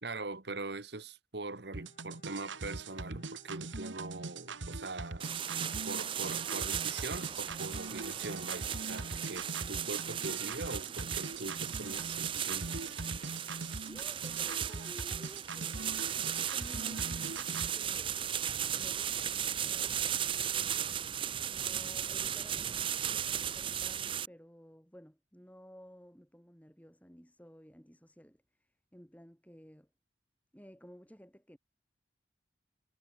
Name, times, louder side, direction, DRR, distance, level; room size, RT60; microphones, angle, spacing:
voice 1, 0.0-5.3 5.9-13.0, right 3 dB, 60° right, 1.4 m, -42 dB
Bowed string instrument, 1.7-5.5 5.8-5.9, left 1 dB, 40° left, 6.6 m, -63 dB
sound 1, 1.7-17.7, right 3 dB, 80° right, 1.6 m, -42 dB
sound 2, 5.2-24.3, right 9 dB, 25° right, 0.4 m, -36 dB
voice 2, 13.9-18.2 18.7-20.9 21.5-29.9 30.5-31.6, equal, 10° left, 3.5 m, -55 dB
head